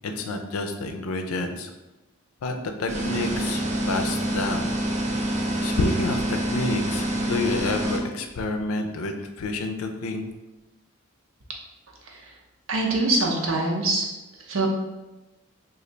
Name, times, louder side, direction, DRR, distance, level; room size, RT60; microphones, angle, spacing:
voice 1, 0.0-1.7 2.4-4.7 5.6-10.3, left 2 dB, 85° left, 5 dB, 0.4 m, -29 dB
sound 1, 2.9-8.0, right 1 dB, 35° right, 0.4 m, -26 dB
voice 2, 12.7-14.0 14.5-14.7, right 2 dB, 70° right, -1 dB, 0.8 m, -23 dB
3.2 x 2.4 x 3.8 m, 1.1 s
head